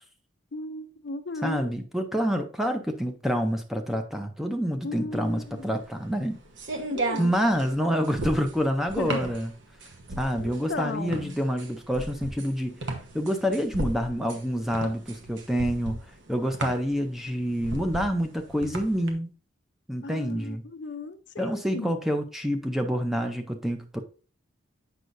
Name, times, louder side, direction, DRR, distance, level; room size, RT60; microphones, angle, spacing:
voice 1, 0.5-1.7 4.8-5.7 6.9-7.3 9.0-9.2 10.4-11.4 20.0-21.9, left 3 dB, 60° left, 0.5 m, -36 dB
voice 2, 1.4-6.4 7.2-9.5 10.2-12.8 13.1-16.0 16.3-19.3 19.9-20.6 21.4-24.0, equal, ahead, 0.6 m, -27 dB
sound 1, 5.2-19.1, right 2 dB, 70° right, 1.1 m, -35 dB
7.9 x 5.5 x 2.6 m
head